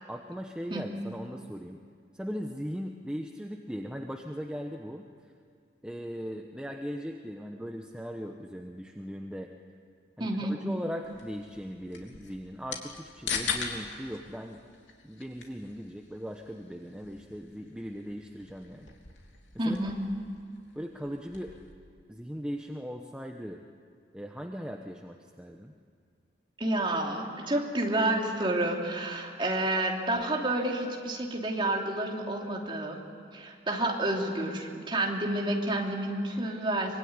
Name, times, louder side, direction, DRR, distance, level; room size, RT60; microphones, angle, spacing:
voice 1, 0.1-1.8 2.1-5.0 5.8-9.5 10.2-14.6 15.0-18.9 19.6-19.9 20.7-21.6 22.1-23.6 24.1-25.7, equal, 5° right, 2 dB, 1.0 m, -39 dB
voice 2, 10.2-10.6 19.6-20.0 26.6-33.0 33.3-37.0, right 1 dB, 25° right, 0 dB, 3.1 m, -29 dB
sound 1, 11.0-21.7, left 6 dB, 85° left, 3.2 m, -41 dB
24.5 x 23.0 x 9.7 m, 2.1 s
head